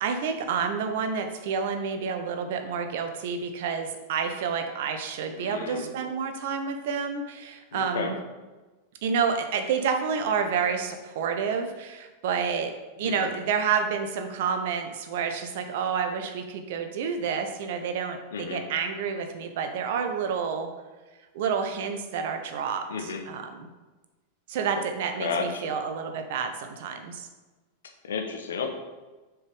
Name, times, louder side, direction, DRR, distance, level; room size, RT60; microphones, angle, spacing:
voice 1, 0.0-8.2 9.0-12.7 13.0-20.7 21.3-23.7 24.5-27.3, right 6 dB, 55° right, 6 dB, 0.9 m, -29 dB
voice 2, 5.4-6.0 7.7-8.1 13.0-13.3 18.3-18.6 22.9-23.2 25.2-25.7 28.0-28.7, left 5 dB, 65° left, 4 dB, 1.0 m, -32 dB
6.6 x 4.8 x 5.3 m, 1.2 s
figure-of-eight pair, 90°, 0 cm